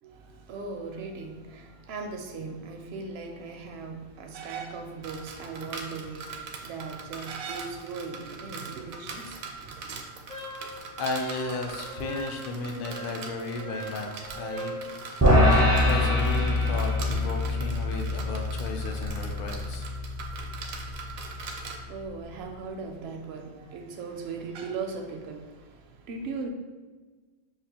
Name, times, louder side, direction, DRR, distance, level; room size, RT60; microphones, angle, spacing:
voice 1, 0.0-10.1 20.2-26.5, right 4 dB, 65° right, 0.7 m, -39 dB
sound 1, 5.0-21.8, right 4 dB, 85° right, 1.0 m, -42 dB
Wind instrument woodwind instrument, 10.3-14.9, right 1 dB, 85° left, 1.1 m, -41 dB
voice 2, 11.0-19.8, left 3 dB, 65° left, 0.5 m, -34 dB
sound 2, 15.2-21.6, left 1 dB, 25° right, 0.3 m, -25 dB
5.8 x 2.4 x 2.8 m
omnidirectional pair, 1.4 m